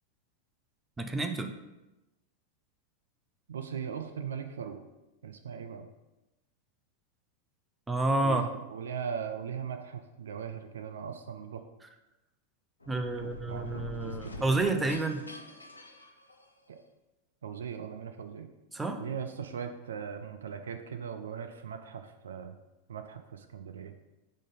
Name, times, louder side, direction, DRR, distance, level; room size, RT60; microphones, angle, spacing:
voice 1, 1.0-1.5 7.9-8.5 12.9-15.2 18.7-19.0, right 2 dB, 10° right, 5 dB, 0.5 m, -29 dB
voice 2, 3.5-4.8 5.2-5.9 8.2-11.6 13.2-14.9 16.7-16.8 17.4-18.5 19.0-22.6 22.9-23.9, right 7 dB, 65° right, 7 dB, 0.5 m, -39 dB
sound 1, 12.8-16.8, left 2 dB, 80° left, 0.6 m, -45 dB
5.1 x 3.8 x 5.3 m, 1.0 s
figure-of-eight pair, 90°, 0 cm